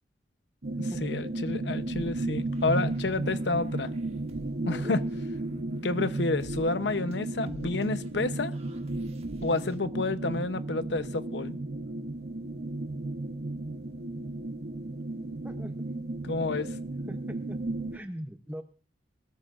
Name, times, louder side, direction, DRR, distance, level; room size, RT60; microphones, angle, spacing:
sound 1, 0.6-18.0, right 2 dB, 60° right, 1.0 m, -34 dB
voice 1, 0.8-3.9 4.7-5.0 5.8-8.5 9.4-11.6 16.2-16.8, left 3 dB, 75° left, 0.8 m, -30 dB
sound 2, 1.9-9.8, right 1 dB, 35° right, 1.4 m, -53 dB
voice 2, 15.4-15.9 16.7-17.6 17.9-18.6, equal, 10° right, 0.8 m, -42 dB
23.0 x 14.0 x 2.5 m
head